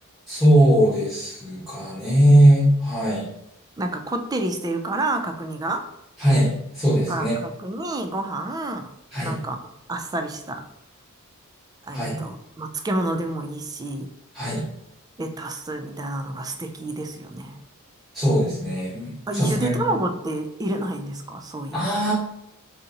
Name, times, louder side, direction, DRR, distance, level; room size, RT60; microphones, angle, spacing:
voice 1, 0.3-3.2 6.2-7.3 9.1-9.4 11.9-12.2 14.3-14.6 18.1-19.7 21.7-22.1, right 1 dB, ahead, -10 dB, 1.2 m, -19 dB
voice 2, 3.8-5.9 7.1-8.9 9.2-9.6 9.9-10.7 11.8-14.1 15.2-17.6 19.3-22.0, right 2 dB, 15° right, 6 dB, 0.3 m, -29 dB
3.8 x 2.8 x 3.9 m, 0.80 s
head